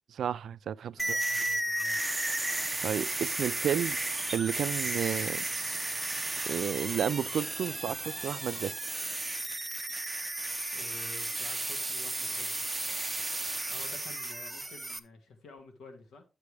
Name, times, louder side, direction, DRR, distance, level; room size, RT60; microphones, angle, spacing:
voice 1, 0.1-1.2 2.8-4.0 4.3-5.5 6.5-8.8, right 9 dB, 65° right, 0.3 m, -32 dB
voice 2, 1.0-2.1 10.7-12.6 13.7-16.2, left 3 dB, 75° left, 1.6 m, -50 dB
sound 1, 1.0-15.0, right 2 dB, 10° right, 0.6 m, -34 dB
sound 2, 2.4-8.8, right 5 dB, 35° right, 0.9 m, -48 dB
9.6 x 6.8 x 3.3 m
wide cardioid pair, 160°, 0 cm